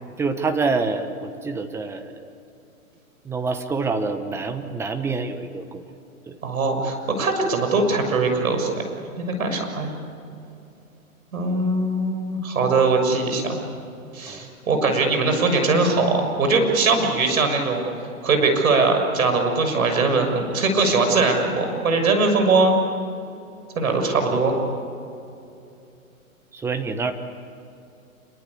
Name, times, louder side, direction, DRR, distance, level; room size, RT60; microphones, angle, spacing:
voice 1, 0.2-2.3 3.2-5.8 6.3-6.4 14.3-14.4 26.5-27.1, right 4 dB, 5° right, 8 dB, 0.9 m, -26 dB
voice 2, 6.4-8.9 9.2-9.9 11.3-13.6 14.1-17.8 18.2-22.7 23.7-24.6, right 3 dB, 70° right, 5 dB, 6.6 m, -21 dB
27.0 x 23.5 x 8.5 m, 2.6 s
hypercardioid pair, 145°, 43 cm